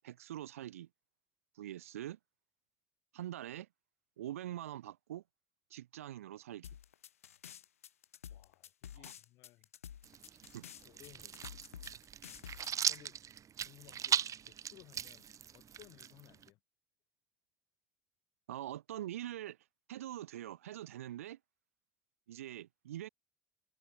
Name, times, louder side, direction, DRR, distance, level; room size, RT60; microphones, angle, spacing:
voice 1, 0.0-0.9 1.6-2.2 3.1-3.7 4.2-5.2 5.7-6.7 9.0-9.1 10.5-10.6 18.5-19.6 19.9-21.4 22.3-23.1, right 12 dB, 80° right, 0.5 m, -44 dB
sound 1, 6.6-13.0, left 9 dB, 85° left, 0.4 m, -50 dB
voice 2, 8.3-9.7 10.3-10.6 10.8-11.6 12.9-13.2 13.6-16.6, left 18 dB, 65° left, 4.0 m, -60 dB
sound 2, 10.0-16.5, right 9 dB, 45° right, 1.2 m, -38 dB
figure-of-eight pair, 50°, 7 cm